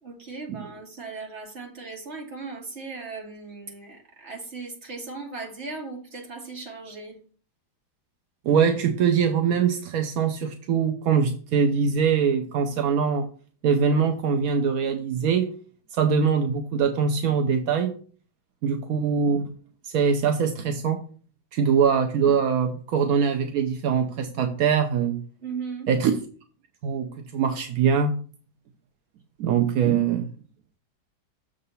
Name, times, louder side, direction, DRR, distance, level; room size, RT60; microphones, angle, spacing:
voice 1, 0.0-7.2 25.4-25.9, right 4 dB, 35° right, 0 dB, 1.8 m, -37 dB
voice 2, 8.4-13.3 13.6-15.5 15.9-17.9 18.6-19.5 19.8-21.0 21.5-25.2 25.9-26.1 26.8-28.1 29.4-30.3, right 6 dB, 70° right, 5 dB, 0.9 m, -23 dB
6.9 x 3.8 x 5.4 m, 0.42 s
omnidirectional pair, 2.1 m